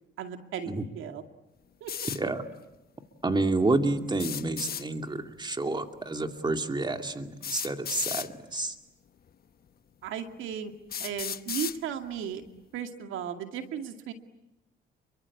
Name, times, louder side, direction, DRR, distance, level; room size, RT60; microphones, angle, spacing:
voice 1, 0.2-1.2 1.8-1.9 10.0-10.7 11.0-12.4 12.7-14.1, right 8 dB, 85° right, 6 dB, 2.3 m, -35 dB
Spray bottle, 1.9-2.2 4.1-4.8 6.3-6.4 7.4-8.3 9.3-9.4 10.1-10.2 10.9-11.8, left 8 dB, 50° left, 1.2 m, -34 dB
voice 2, 2.1-2.5 3.2-8.7, right 2 dB, 20° right, 6 dB, 2.5 m, -29 dB
30.0 x 23.5 x 8.6 m, 0.95 s
cardioid pair, 90°, 20 cm